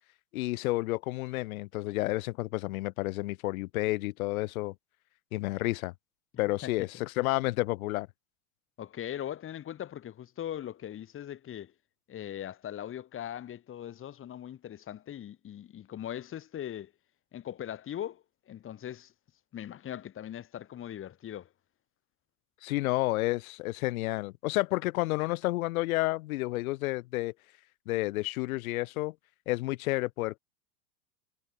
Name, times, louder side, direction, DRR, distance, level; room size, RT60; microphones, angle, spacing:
voice 1, 0.3-4.7 5.3-5.9 6.4-8.1 22.6-27.3 27.9-29.1 29.5-30.4, left 20 dB, 65° left, 0.9 m, -30 dB
voice 2, 8.8-11.7 12.1-16.9 17.3-19.1 19.5-21.5, left 11 dB, 25° left, 2.0 m, -40 dB
hypercardioid pair, 105°, 46 cm